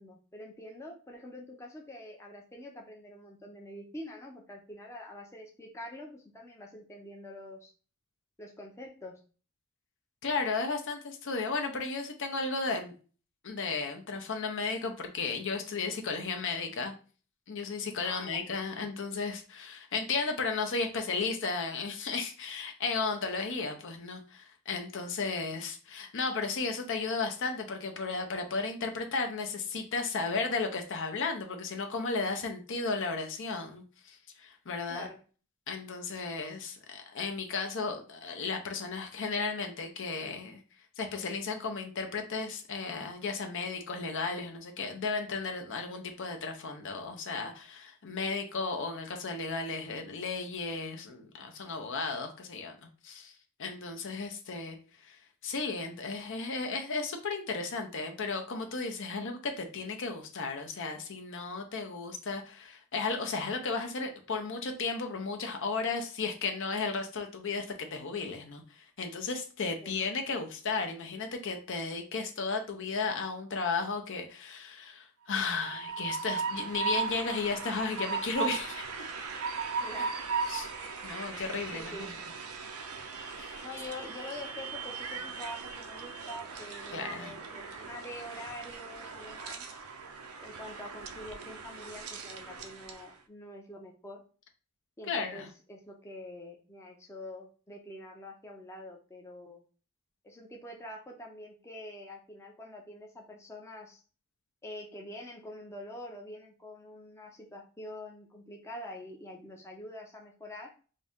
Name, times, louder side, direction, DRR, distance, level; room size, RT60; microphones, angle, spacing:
voice 1, 0.0-7.7 8.4-9.2 18.0-18.5 34.9-35.2 69.8-70.0 79.8-80.2 81.7-82.2 83.6-89.7 90.4-94.2 95.0-99.6 100.2-104.0 104.6-110.7, left 1 dB, 10° left, 0 dB, 0.6 m, -45 dB
voice 2, 10.2-12.9 13.4-16.9 17.5-35.1 35.7-40.6 41.0-53.3 53.6-54.8 55.0-68.6 69.0-78.8 80.0-80.1 80.5-80.7 81.0-82.1 83.4-83.6 86.9-87.3 95.1-95.5, left 4 dB, 55° left, 4 dB, 0.6 m, -34 dB
Train, 75.3-93.1, right 5 dB, 75° right, 0.6 m, -38 dB
3.7 x 2.7 x 3.5 m, 0.38 s
head